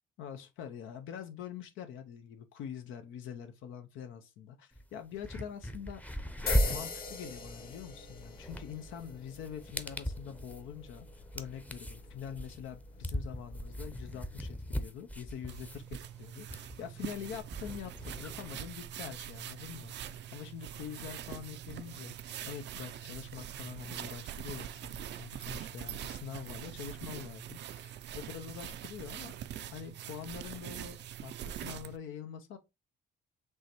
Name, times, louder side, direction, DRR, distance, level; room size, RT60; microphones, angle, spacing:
voice 1, 0.2-6.0 6.5-11.1 11.3-29.3 29.7-32.6, left 8 dB, 85° left, 0.6 m, -45 dB
sound 1, 4.7-4.8 5.2-18.5, equal, 5° left, 0.6 m, -38 dB
sound 2, 6.5-14.6, left 4 dB, 50° left, 1.5 m, -44 dB
sound 3, 15.5-32.0, right 10 dB, 65° right, 0.4 m, -43 dB
5.4 x 3.2 x 3.0 m
cardioid pair, 90°, 20 cm